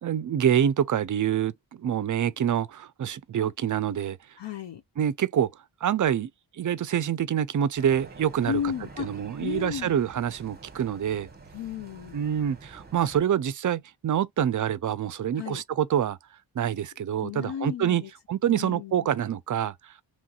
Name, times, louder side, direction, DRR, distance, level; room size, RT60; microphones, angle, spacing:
voice 1, 0.0-4.2 5.0-5.5 5.8-8.6 9.0-11.3 12.1-16.2 16.6-18.0 18.3-20.0, right 9 dB, 40° right, 0.4 m, -26 dB
voice 2, 4.4-4.8 8.5-10.0 11.5-12.3 15.3-15.6 17.2-18.1 18.5-19.1, left 8 dB, 60° left, 0.6 m, -34 dB
sound 1, 7.8-13.2, right 3 dB, 20° right, 0.8 m, -47 dB
3.1 x 2.7 x 2.3 m
cardioid pair, 55°, 50 cm